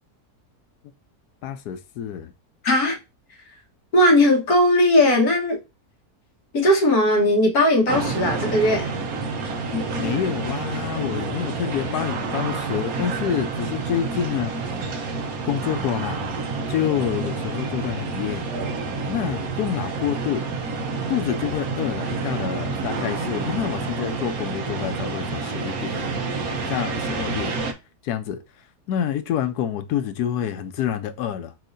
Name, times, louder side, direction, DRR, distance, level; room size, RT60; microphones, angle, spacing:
voice 1, 1.4-2.3 10.0-14.6 15.5-16.3 16.7-18.5 19.1-20.5 21.1-26.1 26.4-27.6 28.0-28.4 28.9-31.5, left 9 dB, 85° left, 1.2 m, -27 dB
voice 2, 2.6-3.0 3.9-5.6 6.5-8.9 9.7-9.8, left 1 dB, 70° left, 1.8 m, -18 dB
sound 1, 7.9-27.7, right 4 dB, 70° right, 1.3 m, -28 dB
4.6 x 4.1 x 2.6 m
omnidirectional pair, 1.6 m